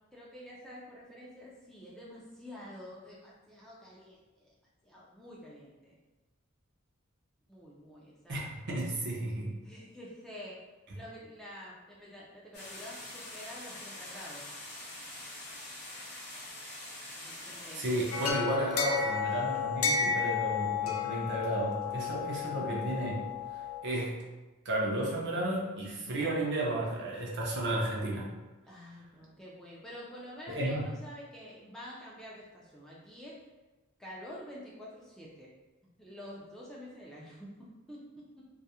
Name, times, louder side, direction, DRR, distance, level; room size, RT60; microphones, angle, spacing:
voice 1, 0.1-4.5 4.8-6.0 7.5-8.5 9.6-10.6 10.9-14.4 17.1-19.0 28.7-33.4 34.0-35.5 36.0-37.5 37.9-38.4, equal, 5° left, -6 dB, 0.4 m, -48 dB
voice 2, 8.3-9.5 17.8-23.3 23.8-24.2 24.7-28.3 30.5-30.9, right 1 dB, 55° right, -3 dB, 0.5 m, -33 dB
sound 1, 12.5-18.3, left 1 dB, 50° left, 0.7 m, -45 dB
sound 2, 18.1-23.8, left 6 dB, 80° left, 0.3 m, -32 dB
2.3 x 2.0 x 2.7 m, 1.1 s
head